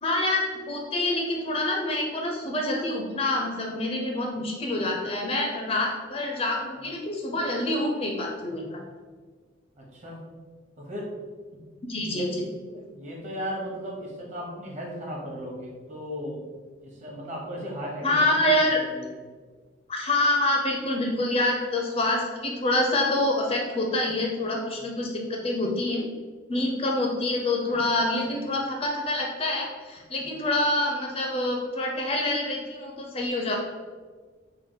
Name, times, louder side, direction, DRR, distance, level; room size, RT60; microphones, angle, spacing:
voice 1, 0.0-8.8 11.9-12.4 12.7-12.8 18.0-18.8 19.9-26.0 26.5-33.6, left 1 dB, 30° left, 1 dB, 0.4 m, -26 dB
voice 2, 9.8-10.2 10.8-11.1 12.1-12.3 12.9-16.4 16.8-18.5 18.7-19.0 27.6-27.8 30.1-30.3, equal, 35° right, -3 dB, 0.9 m, -36 dB
3.7 x 2.2 x 3.7 m, 1.4 s
head